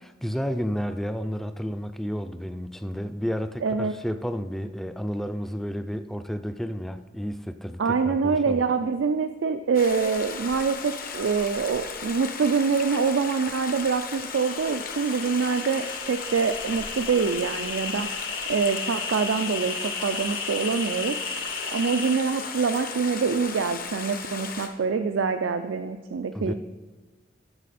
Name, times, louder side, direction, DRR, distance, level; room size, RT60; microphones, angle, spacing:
voice 1, 0.0-8.6 26.3-26.5, equal, ahead, 9 dB, 0.4 m, -31 dB
voice 2, 3.6-3.9 7.8-18.1 18.5-21.2 21.7-26.5, right 5 dB, 75° right, 7 dB, 0.4 m, -25 dB
Stream, 9.7-24.7, left 5 dB, 50° left, 0.9 m, -36 dB
sound 1, 14.4-22.9, left 4 dB, 80° left, 1.2 m, -35 dB
12.5 x 6.4 x 4.2 m, 1.3 s
head